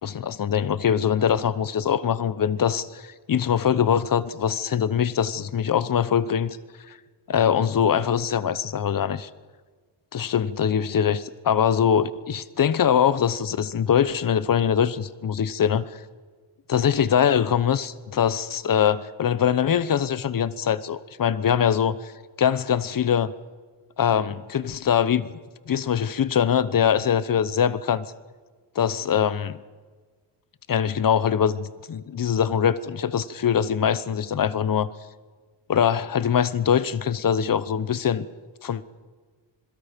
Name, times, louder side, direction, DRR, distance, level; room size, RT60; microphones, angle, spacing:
voice 1, 0.0-6.6 6.9-7.0 7.3-9.3 10.1-15.9 16.7-22.1 22.4-23.3 24.0-25.3 25.7-28.1 28.7-29.6 30.7-34.9 35.7-38.3 38.6-38.8, left 8 dB, 45° left, 17 dB, 0.9 m, -23 dB
27.0 x 21.5 x 5.2 m, 1.4 s
cardioid pair, 105°, 46 cm